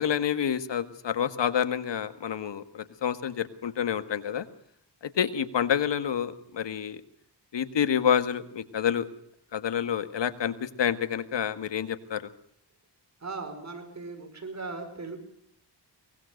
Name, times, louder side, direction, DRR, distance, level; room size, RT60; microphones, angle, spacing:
voice 1, 0.0-4.5 5.2-7.0 7.5-9.1 9.5-12.3, left 8 dB, 80° left, 11 dB, 1.7 m, -28 dB
voice 2, 13.2-15.2, right 3 dB, 40° right, 6 dB, 5.4 m, -38 dB
23.5 x 20.0 x 6.5 m, 0.68 s
wide cardioid pair, 105°, 42 cm